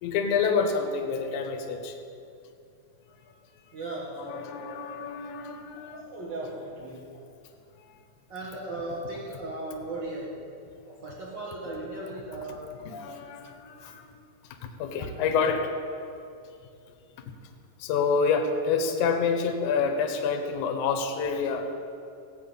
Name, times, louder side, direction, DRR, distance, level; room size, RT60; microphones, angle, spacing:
voice 1, 0.0-2.0 3.1-3.3 3.7-3.8 4.1-6.1 7.8-8.0 12.8-14.1 14.6-15.7 15.9-16.1 17.8-21.7, left 5 dB, 65° left, 5 dB, 2.1 m, -28 dB
voice 2, 3.7-4.8 5.8-7.2 8.3-10.4 10.8-12.8 15.3-15.5, right 2 dB, 60° right, -5 dB, 1.2 m, -37 dB
16.5 x 5.6 x 8.6 m, 2.5 s
omnidirectional pair, 4.4 m